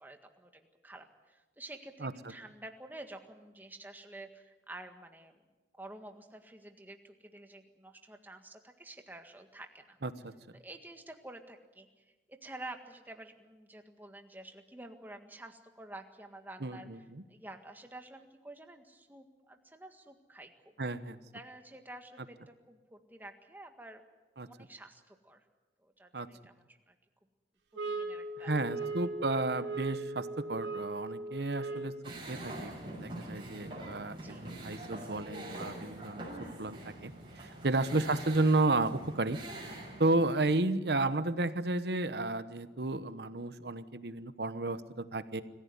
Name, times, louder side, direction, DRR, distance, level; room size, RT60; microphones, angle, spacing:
voice 1, 0.0-5.4 5.7-10.0 10.5-17.0 17.3-20.5 21.3-24.0 24.4-25.4 25.8-26.9 27.9-28.5 28.8-28.9 31.7-31.8 34.1-34.5, right 2 dB, 10° right, 5 dB, 1.7 m, -50 dB
voice 2, 10.0-10.3 16.6-17.2 20.8-21.2 24.4-24.5 26.1-26.3 28.4-31.9 32.3-32.7 33.0-37.1 37.4-39.4 40.0-45.4, right 2 dB, 70° right, 13 dB, 1.1 m, -32 dB
sound 1, 27.7-32.1, right 3 dB, 90° right, 3.4 m, -38 dB
sound 2, 32.0-40.3, right 1 dB, 30° right, 6.8 m, -44 dB
25.0 x 15.0 x 9.7 m, 1.2 s
head